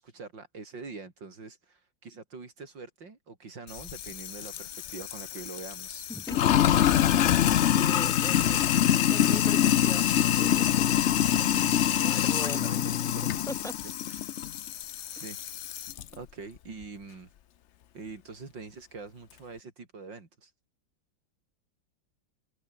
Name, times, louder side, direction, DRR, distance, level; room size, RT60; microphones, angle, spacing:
voice 1, 0.0-6.1 11.4-13.5 13.8-14.4 15.1-15.9 16.1-17.3 17.9-20.5, right 4 dB, 70° right, 4.5 m, -45 dB
Sink (filling or washing), 3.7-16.0, left 10 dB, 75° left, 0.6 m, -25 dB
voice 2, 7.7-8.6 9.1-10.9 12.1-13.7 15.1-15.4, equal, ahead, 1.9 m, -40 dB
omnidirectional pair, 2.1 m